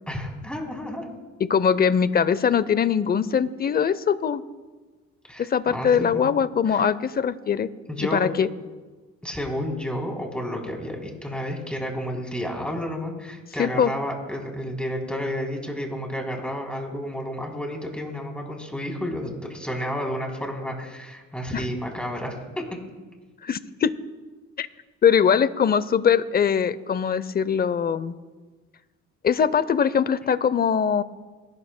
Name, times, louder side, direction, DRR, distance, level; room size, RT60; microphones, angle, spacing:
voice 1, 0.1-1.1 5.3-6.2 6.7-6.9 7.9-8.2 9.2-22.6, equal, 5° left, 0 dB, 3.3 m, -31 dB
voice 2, 1.5-4.4 5.4-7.7 8.0-8.5 13.6-13.9 21.5-21.6 23.4-23.9 24.6-24.7 25.0-28.1 29.2-31.0, left 7 dB, 30° left, 16 dB, 0.6 m, -22 dB
28.0 x 12.0 x 2.2 m, 1.3 s
cardioid pair, 90°, 30 cm